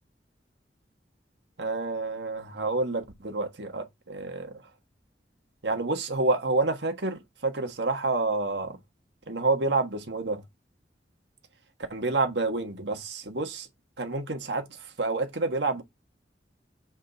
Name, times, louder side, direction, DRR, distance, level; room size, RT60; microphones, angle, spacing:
voice 1, 1.6-4.5 5.6-8.8 9.3-10.4 11.9-13.7 14.0-14.7 15.0-15.8, right 3 dB, 80° right, 1.4 m, -28 dB
7.2 x 3.7 x 4.0 m
head